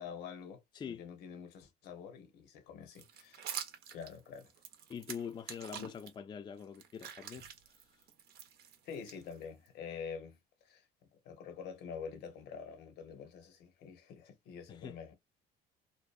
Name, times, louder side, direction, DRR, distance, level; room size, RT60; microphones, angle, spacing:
voice 1, 0.0-3.5 3.9-4.5 5.8-5.9 8.8-10.4 10.6-15.2, left 6 dB, 80° left, 0.7 m, -47 dB
voice 2, 0.7-1.1 4.9-7.5 14.7-15.0, left 7 dB, 25° left, 0.3 m, -44 dB
sound 1, 2.9-6.1 6.6-9.7, right 8 dB, 70° right, 0.7 m, -47 dB
2.6 x 2.1 x 2.3 m
cardioid pair, 110°, 17 cm